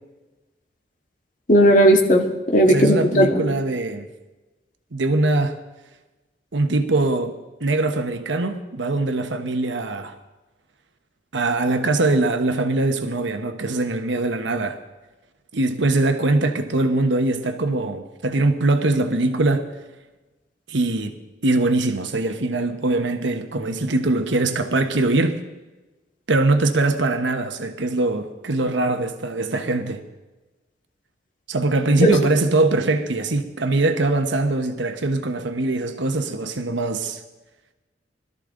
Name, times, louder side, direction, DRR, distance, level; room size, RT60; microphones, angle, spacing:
voice 1, 1.5-3.4 32.0-32.1, equal, 45° left, 1.9 m, -15 dB
voice 2, 2.6-4.1 4.9-5.6 6.5-10.1 11.3-14.8 15.5-19.7 20.7-21.1 21.4-25.4 26.3-30.0 31.5-37.2, right 2 dB, 85° right, 1.1 m, -22 dB
21.5 x 13.0 x 3.8 m
head